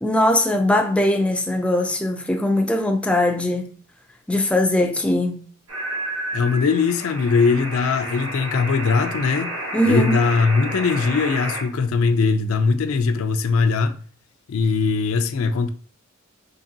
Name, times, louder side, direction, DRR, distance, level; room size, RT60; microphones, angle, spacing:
voice 1, 0.0-3.7 4.3-5.4 9.7-10.2, left 1 dB, 5° left, 0.3 m, -20 dB
sound 1, 5.7-11.6, right 1 dB, 80° right, 1.3 m, -31 dB
voice 2, 6.3-9.5 9.9-14.0 14.5-15.7, left 4 dB, 80° left, 0.4 m, -20 dB
3.9 x 2.9 x 2.7 m
head